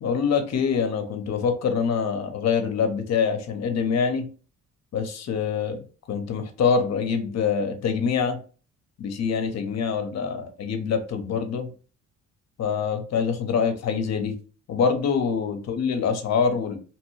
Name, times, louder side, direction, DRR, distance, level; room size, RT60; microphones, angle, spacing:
voice 1, 0.0-4.3 4.9-8.4 9.0-11.7 12.6-14.4 14.7-16.8, left 6 dB, 60° left, 6 dB, 0.7 m, -25 dB
2.9 x 2.2 x 3.1 m, 0.37 s
cardioid pair, 90°, 30 cm